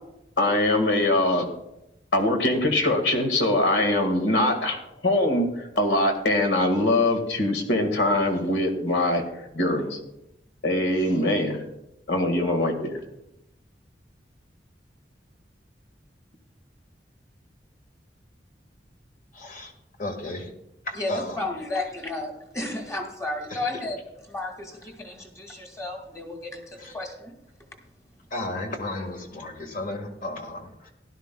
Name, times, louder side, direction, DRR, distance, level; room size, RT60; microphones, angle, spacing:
voice 1, 0.4-1.5 2.1-9.2 9.5-10.0 10.6-11.6 12.1-13.0, left 1 dB, 80° left, 4 dB, 1.8 m, -23 dB
voice 2, 19.3-19.7 20.0-20.5 20.8-21.4 23.5-23.8 26.8-27.0 28.3-30.9, left 2 dB, 50° left, 3 dB, 1.6 m, -34 dB
voice 3, 21.0-24.0 24.3-27.3, left 2 dB, 15° left, 3 dB, 1.9 m, -33 dB
16.0 x 11.5 x 2.3 m, 0.87 s
head